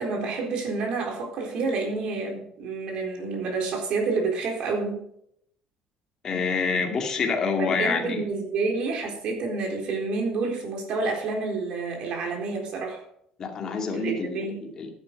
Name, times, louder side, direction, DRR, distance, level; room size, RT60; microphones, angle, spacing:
voice 1, 0.0-5.1 7.6-13.0 13.9-14.7, right 3 dB, 50° right, 2 dB, 4.0 m, -29 dB
voice 2, 6.2-8.2 13.4-14.5 14.8-14.9, left 4 dB, 30° left, 1 dB, 2.5 m, -27 dB
11.5 x 10.5 x 5.4 m, 0.72 s
cardioid pair, 170°, 2 cm